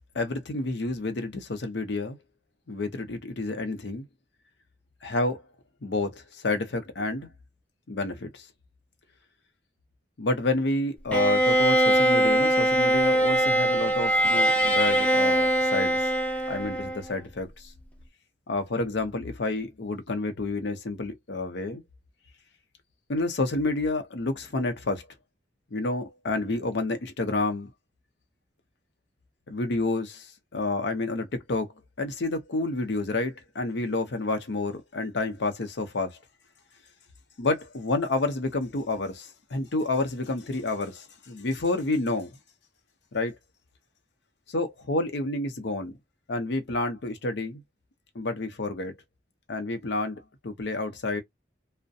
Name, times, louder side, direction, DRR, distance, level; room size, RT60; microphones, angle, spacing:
voice 1, 0.1-2.2 2.7-4.1 5.0-5.4 5.8-7.3 7.9-8.5 10.2-16.1 16.5-17.7 18.5-21.8 23.1-25.1 25.7-27.7 29.5-36.2 37.4-42.4 43.1-43.4 44.5-45.9 46.3-47.6 48.1-49.0 49.5-51.2, left 2 dB, 70° left, 0.6 m, -29 dB
Bowed string instrument, 11.1-17.2, right 1 dB, 5° left, 0.4 m, -22 dB
2.4 x 2.1 x 2.6 m
head